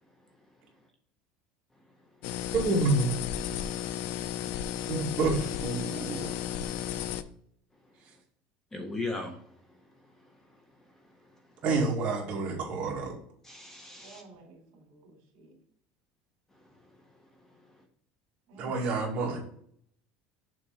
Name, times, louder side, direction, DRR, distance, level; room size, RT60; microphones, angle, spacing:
sound 1, 2.2-7.2, left 10 dB, 65° left, 0.4 m, -34 dB
voice 1, 2.5-3.1 4.9-6.5 11.6-13.2 18.6-19.4, right 3 dB, 35° right, -2 dB, 1.9 m, -28 dB
voice 2, 8.7-9.4 13.4-14.2, left 2 dB, 10° left, 3 dB, 0.7 m, -36 dB
voice 3, 14.0-15.5 18.5-18.8, right 3 dB, 65° right, 0 dB, 2.4 m, -52 dB
6.8 x 3.0 x 5.0 m, 0.64 s
cardioid pair, 155°, 4 cm